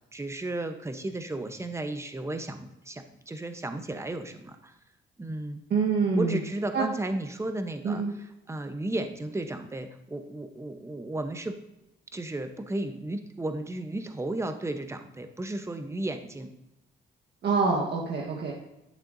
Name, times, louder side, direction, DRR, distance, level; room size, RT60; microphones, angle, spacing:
voice 1, 0.1-4.7 5.2-5.6 6.1-8.0 8.5-11.6 12.1-16.5 18.5-18.6, right 2 dB, 15° right, 7 dB, 0.9 m, -34 dB
voice 2, 5.7-6.4 6.7-6.9 7.8-8.2 17.4-18.5, right 4 dB, 60° right, -2 dB, 1.4 m, -26 dB
11.5 x 6.9 x 2.7 m, 0.90 s
cardioid pair, 90°, 20 cm